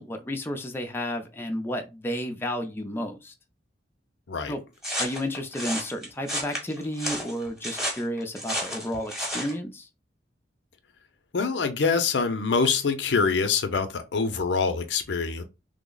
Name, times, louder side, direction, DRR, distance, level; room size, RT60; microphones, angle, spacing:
voice 1, 0.0-3.3 4.5-4.6 5.0-9.9, equal, 15° left, 0.4 m, -32 dB
sound 1, 4.8-9.5, equal, 5° right, 1.1 m, -32 dB
voice 2, 11.3-15.4, left 5 dB, 70° left, 0.6 m, -25 dB
3.2 x 2.1 x 3.8 m
head